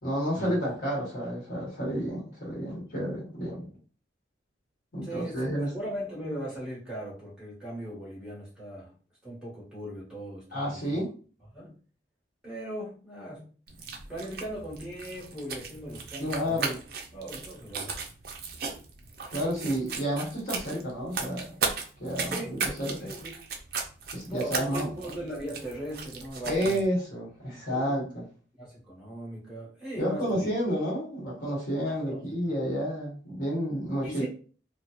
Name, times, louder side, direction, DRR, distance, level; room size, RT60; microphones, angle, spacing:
voice 1, 0.0-3.7 4.9-5.7 10.5-11.1 16.2-16.8 19.3-21.5 22.0-23.1 24.1-24.9 26.4-28.2 30.0-34.3, equal, 45° left, -5 dB, 1.0 m, -30 dB
voice 2, 5.0-5.5 5.7-8.9 9.2-11.0 11.5-11.7 12.4-13.5 14.1-16.7 17.1-18.0 22.2-22.5 23.0-23.3 24.3-26.8 27.5-28.2 28.6-30.5 31.8-32.2 34.0-34.3, right 1 dB, 5° right, -8 dB, 1.2 m, -39 dB
sound 1, 13.7-26.9, right 5 dB, 50° right, 0.4 m, -37 dB
2.7 x 2.1 x 2.3 m, 0.39 s
head